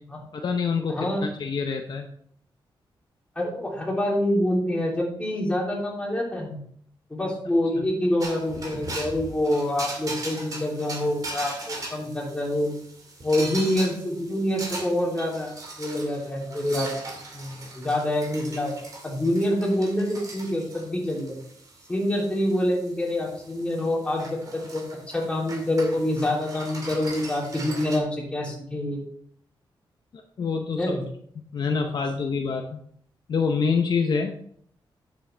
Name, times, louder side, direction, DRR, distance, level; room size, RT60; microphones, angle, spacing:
voice 1, 0.3-2.1 7.8-7.9 30.4-31.0 31.5-32.8 33.3-34.4, left 5 dB, 55° left, 4 dB, 0.8 m, -26 dB
voice 2, 0.9-1.3 3.3-6.6 7.1-12.7 13.2-16.9 17.3-18.7 19.0-21.4 21.9-29.0 30.8-31.0, left 1 dB, 15° left, -3 dB, 3.1 m, -26 dB
sound 1, 8.2-28.0, right 2 dB, 45° right, 2.3 m, -39 dB
10.0 x 7.6 x 3.4 m, 0.64 s
wide cardioid pair, 150°, 9 cm